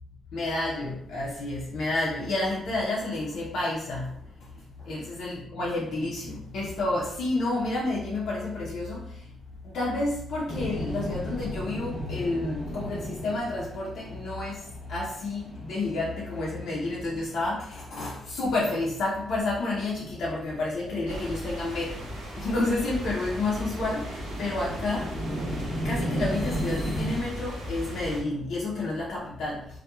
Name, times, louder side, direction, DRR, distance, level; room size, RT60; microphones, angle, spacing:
voice 1, 0.3-4.2 4.8-9.2 9.6-22.1 22.4-25.1 25.8-29.7, left 2 dB, 70° left, -5 dB, 0.5 m, -30 dB
sound 1, 10.5-18.1 18.4-19.4 19.8-27.2, equal, 10° left, 0.7 m, -35 dB
sound 2, 21.1-28.2, right 1 dB, 90° right, 0.7 m, -38 dB
2.9 x 2.1 x 2.2 m, 0.67 s
cardioid pair, 90°, 0 cm